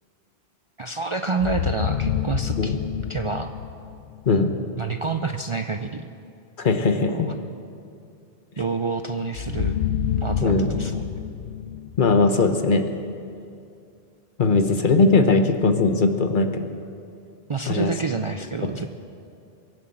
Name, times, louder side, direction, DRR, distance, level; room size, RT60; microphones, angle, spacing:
voice 1, 0.8-2.8 3.1-3.5 4.8-6.1 7.0-7.3 8.6-9.7 10.2-11.1 17.5-19.0, right 4 dB, 40° right, 6 dB, 0.5 m, -28 dB
sound 1, 1.4-4.4 9.3-12.6, left 9 dB, 75° left, 0.8 m, -28 dB
voice 2, 6.6-7.3 10.4-10.7 12.0-12.8 14.4-16.7 17.7-17.9, left 3 dB, 50° left, 7 dB, 1.1 m, -19 dB
23.0 x 7.8 x 7.7 m, 2.5 s
omnidirectional pair, 1.1 m